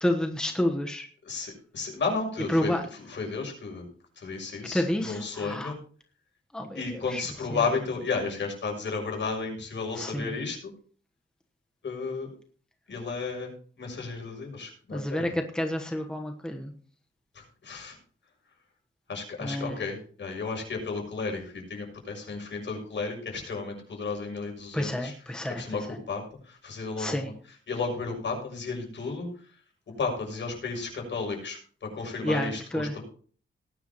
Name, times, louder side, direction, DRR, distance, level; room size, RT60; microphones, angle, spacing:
voice 1, 0.0-1.1 2.5-2.8 4.7-5.7 6.5-7.2 10.0-10.3 14.9-16.7 19.4-19.8 24.7-25.6 25.9-26.0 27.0-27.3 32.2-32.9, left 1 dB, 5° left, 3 dB, 1.2 m, -29 dB
voice 2, 1.2-3.9 4.2-5.7 6.7-10.7 11.8-12.3 12.9-13.5 13.8-15.4 17.3-18.0 19.1-25.1 25.6-27.3 27.7-29.3 30.0-33.0, left 4 dB, 60° left, 2 dB, 6.6 m, -33 dB
19.0 x 10.5 x 3.0 m, 0.43 s
wide cardioid pair, 155°, 21 cm